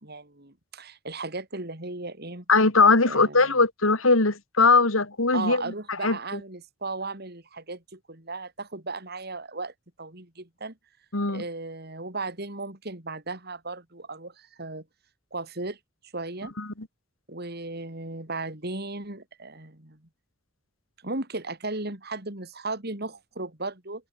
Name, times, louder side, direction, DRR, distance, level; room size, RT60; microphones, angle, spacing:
voice 1, 0.0-2.5 3.0-3.5 5.3-9.7 10.0-10.8 11.3-14.8 15.3-15.8 16.1-16.5 17.3-20.0 21.0-24.1, right 3 dB, 50° right, 3.8 m, -36 dB
voice 2, 2.5-5.6 6.0-6.4 11.1-11.4 16.6-16.7, left 3 dB, 90° left, 3.5 m, -20 dB
head